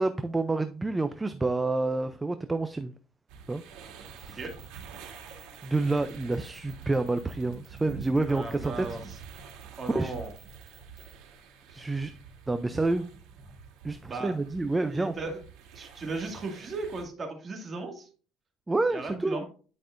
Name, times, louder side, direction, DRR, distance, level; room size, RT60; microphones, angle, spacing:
voice 1, 0.0-2.9 3.5-3.6 4.2-4.4 5.6-9.0 9.9-10.1 11.7-12.1 12.5-13.1 13.8-15.1 18.7-19.4, right 2 dB, 10° right, 0.4 m, -28 dB
sound 1, 3.3-17.0, right 5 dB, 85° right, 2.0 m, -47 dB
sound 2, 4.0-11.2, right 8 dB, 70° right, 2.2 m, -54 dB
voice 2, 8.2-9.2 9.8-10.3 14.1-14.3 14.9-15.4 15.7-18.1 18.9-19.4, right 3 dB, 30° right, 2.0 m, -36 dB
10.0 x 5.3 x 2.5 m
cardioid pair, 135°, 0 cm